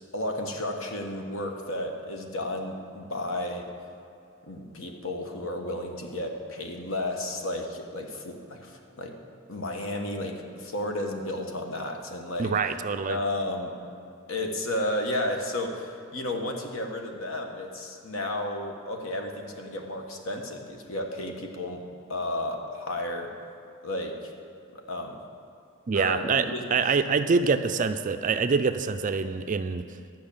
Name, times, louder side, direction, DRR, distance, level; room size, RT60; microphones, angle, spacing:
voice 1, 0.1-3.6 4.5-9.2 9.5-12.5 13.1-13.7 14.3-21.8 22.1-23.3 23.8-24.2 24.7-25.2 25.9-26.6, left 1 dB, 65° left, 3 dB, 1.3 m, -32 dB
voice 2, 12.4-13.2 25.9-29.9, right 5 dB, 35° right, 10 dB, 0.4 m, -25 dB
11.5 x 5.9 x 8.7 m, 2.6 s
head